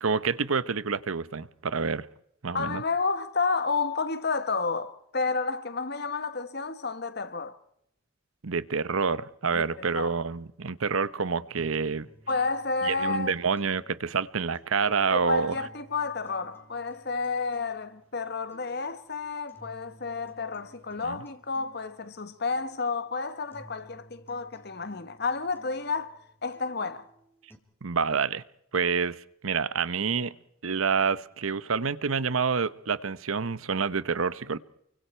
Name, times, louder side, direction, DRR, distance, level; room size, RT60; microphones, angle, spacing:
voice 1, 0.0-2.1 2.4-2.8 8.4-12.1 12.8-15.5 21.1-21.2 27.8-28.4 28.7-29.2 29.4-30.3 30.6-34.6, right 5 dB, 80° right, 0.9 m, -28 dB
voice 2, 2.5-7.6 9.5-10.1 12.3-13.4 15.1-27.1, left 4 dB, 50° left, 1.3 m, -31 dB
sound 1, 11.6-27.6, right 1 dB, 10° left, 2.7 m, -57 dB
29.0 x 24.0 x 4.4 m
head